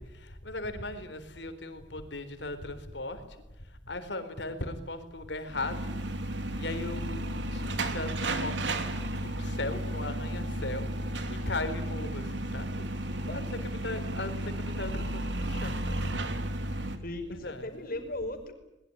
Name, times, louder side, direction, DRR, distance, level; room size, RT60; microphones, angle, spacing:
voice 1, 0.0-6.0 6.5-7.2 7.5-8.7 9.2-10.9 11.2-12.9 13.2-16.2 17.3-17.9, left 2 dB, 75° left, 9 dB, 4.0 m, -38 dB
sound 1, 5.5-17.0, right 1 dB, 80° right, 3.0 m, -33 dB
voice 2, 17.0-18.5, left 1 dB, 55° left, 7 dB, 5.2 m, -37 dB
22.5 x 21.5 x 9.9 m, 0.94 s
head